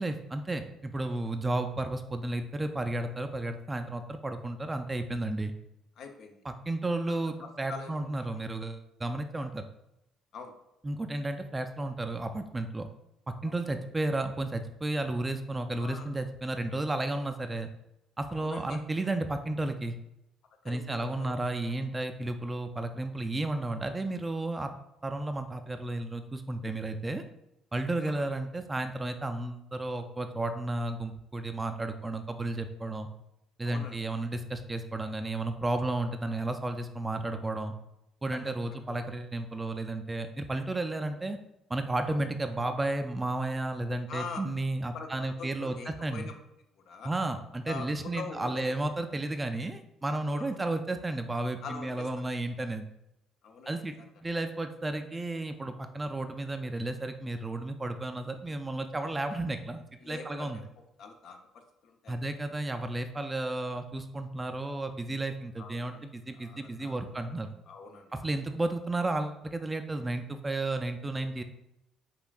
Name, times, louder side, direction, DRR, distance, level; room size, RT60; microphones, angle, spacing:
voice 1, 0.0-5.5 6.4-9.7 10.8-12.9 13.4-17.7 18.2-20.0 20.6-24.7 25.0-27.2 27.7-33.1 33.6-37.8 38.2-41.4 41.7-46.3 47.0-52.8 53.7-53.9 54.2-60.6 62.1-67.5 68.2-71.4, right 2 dB, 20° right, 7 dB, 0.3 m, -33 dB
voice 2, 6.0-6.4 7.4-8.3 10.3-10.5 13.4-13.6 15.8-16.1 18.3-18.8 20.6-21.3 28.0-28.2 33.6-34.0 38.3-38.5 42.1-42.2 44.1-44.4 44.9-46.3 46.8-47.1 47.6-48.8 50.4-50.6 51.6-52.1 53.4-54.1 60.0-60.6 61.0-62.2 65.6-66.1 66.3-67.2 67.7-68.3, left 5 dB, 65° left, 4 dB, 0.5 m, -44 dB
5.3 x 2.4 x 2.3 m, 0.86 s
supercardioid pair, 70°, 0 cm